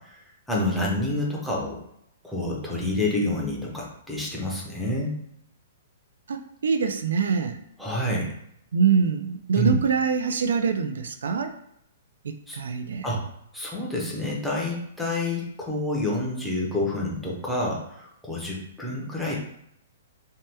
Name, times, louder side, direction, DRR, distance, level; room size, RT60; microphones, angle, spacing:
voice 1, 0.5-1.8 2.2-5.2 7.8-8.3 9.6-9.7 12.5-12.6 13.0-13.2 13.5-19.4, left 1 dB, ahead, -4 dB, 0.5 m, -28 dB
voice 2, 6.3-7.6 8.7-11.5 12.2-13.1, right 6 dB, 90° right, 7 dB, 0.3 m, -24 dB
2.8 x 2.2 x 3.3 m, 0.76 s
hypercardioid pair, 175°, 0 cm